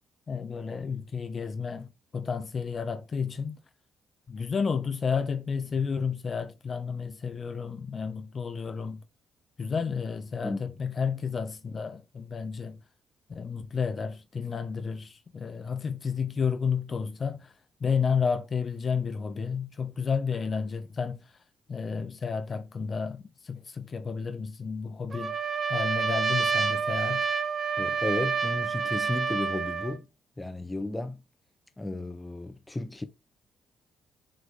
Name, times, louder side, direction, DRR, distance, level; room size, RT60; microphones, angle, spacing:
voice 1, 0.3-3.6 4.3-9.0 9.6-12.8 13.3-17.5 17.8-21.2 21.7-25.4 25.7-27.3, left 6 dB, 40° left, 1.0 m, -31 dB
Trumpet, 25.1-30.0, right 5 dB, 35° right, 1.1 m, -28 dB
voice 2, 27.8-30.1 30.4-31.2 31.8-33.0, left 2 dB, 15° left, 1.1 m, -33 dB
6.4 x 3.9 x 3.7 m
cardioid pair, 90°, 0 cm